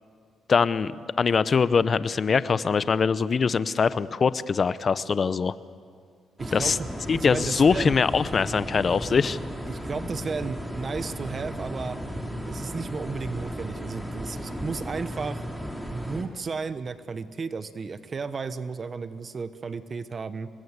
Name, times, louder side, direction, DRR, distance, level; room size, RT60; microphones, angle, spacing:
voice 1, 0.5-5.5 6.5-6.8 7.1-9.4, left 5 dB, 40° left, 15 dB, 0.8 m, -23 dB
sound 1, 6.4-16.2, equal, 5° right, 3.3 m, -35 dB
voice 2, 6.4-7.9 9.7-12.0 12.5-15.4 15.9-20.5, right 4 dB, 40° right, 12 dB, 1.1 m, -34 dB
26.0 x 20.5 x 8.2 m, 2.1 s
cardioid pair, 90°, 0 cm